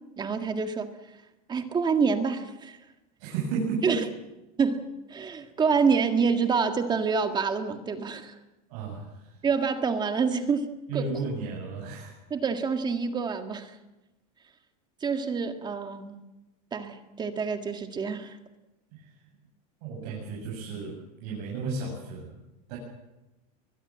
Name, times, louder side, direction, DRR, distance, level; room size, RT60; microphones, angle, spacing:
voice 1, 0.2-0.9 1.5-2.8 3.8-4.1 4.6-8.4 9.4-11.1 12.3-13.7 15.0-16.2 16.7-18.4, right 5 dB, 20° right, 7 dB, 1.8 m, -27 dB
voice 2, 3.2-4.0 8.7-9.3 10.9-12.1 18.9-19.1 19.8-22.4 22.7-22.8, right 4 dB, 70° right, -2 dB, 7.7 m, -33 dB
22.5 x 21.5 x 7.6 m, 1.0 s
supercardioid pair, 145°, 20 cm